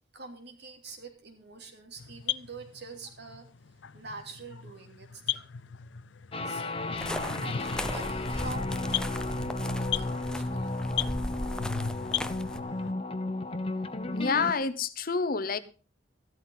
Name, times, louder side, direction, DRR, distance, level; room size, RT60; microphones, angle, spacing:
voice 1, 0.1-3.5 3.7-5.4 6.4-6.9 7.4-10.8, right 3 dB, 60° right, 3.0 m, -46 dB
sound 1, 2.0-12.9, left 8 dB, 85° left, 0.6 m, -37 dB
sound 2, 6.3-14.5, left 2 dB, 30° left, 1.1 m, -34 dB
sound 3, 7.0-12.6, left 1 dB, 5° left, 0.6 m, -37 dB
voice 2, 14.1-15.6, left 5 dB, 50° left, 0.9 m, -28 dB
14.0 x 12.5 x 4.0 m
head